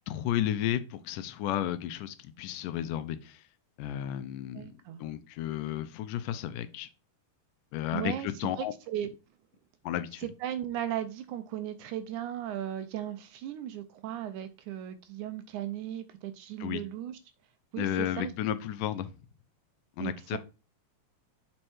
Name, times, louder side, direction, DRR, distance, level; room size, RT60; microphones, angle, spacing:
voice 1, 0.1-3.4 3.8-4.7 5.0-6.9 7.7-8.7 9.8-10.3 16.6-16.8 17.8-19.1 20.0-20.4, left 11 dB, 80° left, 2.2 m, -33 dB
voice 2, 4.5-5.0 7.9-9.1 10.2-17.2 17.7-18.3 20.0-20.4, right 11 dB, 80° right, 1.9 m, -36 dB
7.8 x 4.4 x 4.3 m
omnidirectional pair, 3.8 m